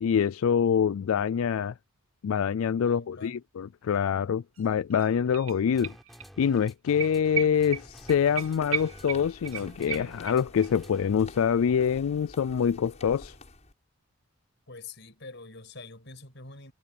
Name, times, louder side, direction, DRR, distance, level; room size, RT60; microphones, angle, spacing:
voice 1, 0.0-1.7 2.2-5.9 6.4-13.3, left 7 dB, 85° left, 0.4 m, -25 dB
voice 2, 2.8-3.4 14.7-16.7, left 3 dB, 60° left, 6.2 m, -45 dB
sound 1, 4.6-4.7 4.9-6.3 6.6-6.7 7.0-10.7 11.0-11.1, right 8 dB, 85° right, 2.8 m, -36 dB
sound 2, 5.7-11.3, equal, ahead, 6.2 m, -50 dB
sound 3, 7.2-13.7, left 2 dB, 35° left, 7.2 m, -49 dB
head